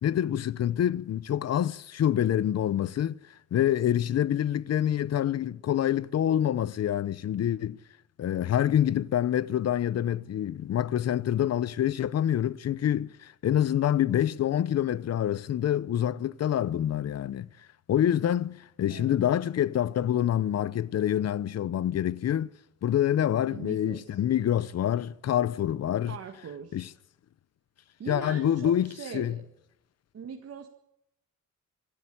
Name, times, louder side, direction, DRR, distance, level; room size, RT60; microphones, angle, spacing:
voice 1, 0.0-3.2 3.5-7.8 8.2-17.5 17.9-22.5 22.8-26.1 26.7-26.9 28.1-29.4, left 10 dB, 60° left, 0.8 m, -26 dB
voice 2, 18.9-19.3 23.5-24.2 26.1-26.8 28.0-29.4 30.1-30.7, right 7 dB, 55° right, 1.9 m, -41 dB
26.0 x 12.5 x 8.6 m
wide cardioid pair, 180°, 30 cm